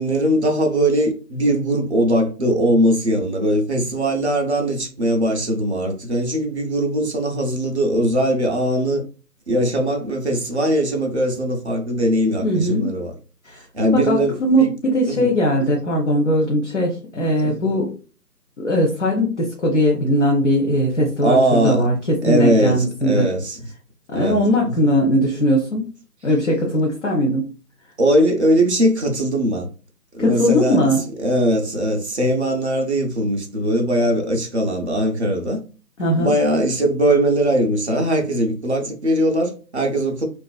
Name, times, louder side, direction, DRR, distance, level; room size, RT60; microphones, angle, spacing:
voice 1, 0.0-9.0 9.5-13.1 13.7-14.7 15.1-15.3 15.6-15.7 17.4-17.6 21.2-21.9 22.2-23.6 24.1-24.4 24.6-24.7 28.0-29.7 30.1-30.8 31.2-35.6 36.1-40.3, right 1 dB, 45° right, 0.4 m, -20 dB
voice 2, 12.4-12.9 13.5-13.6 13.9-14.7 14.9-17.9 18.6-23.3 24.1-25.9 26.2-27.4 30.2-31.0 36.0-36.3, equal, 45° left, 0.6 m, -19 dB
2.4 x 2.3 x 2.2 m
figure-of-eight pair, 145°, 49 cm